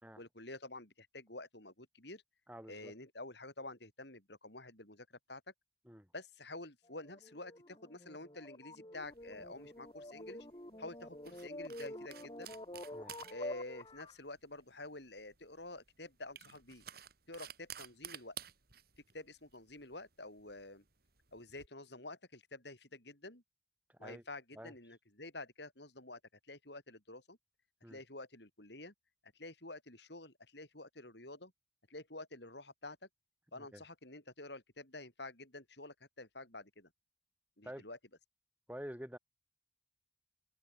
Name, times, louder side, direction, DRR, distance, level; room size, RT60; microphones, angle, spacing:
voice 1, 0.2-2.2 2.7-5.4 6.1-10.5 10.8-12.6 13.3-16.8 17.3-18.4 19.1-20.8 21.3-23.4 24.0-26.2 26.5-27.4 27.9-28.9 29.3-31.5 31.9-33.1 33.5-36.9 37.6-38.0, left 2 dB, 60° left, 5.9 m, -49 dB
voice 2, 2.5-2.9 5.9-6.1 12.9-13.1 23.9-24.2 24.6-24.7 27.8-28.0 33.6-33.8 37.6-37.8 38.7-39.2, equal, 10° right, 3.5 m, -48 dB
sound 1, 6.9-14.2, left 1 dB, 25° left, 3.2 m, -48 dB
sound 2, 9.0-21.7, right 10 dB, 50° right, 3.4 m, -54 dB
head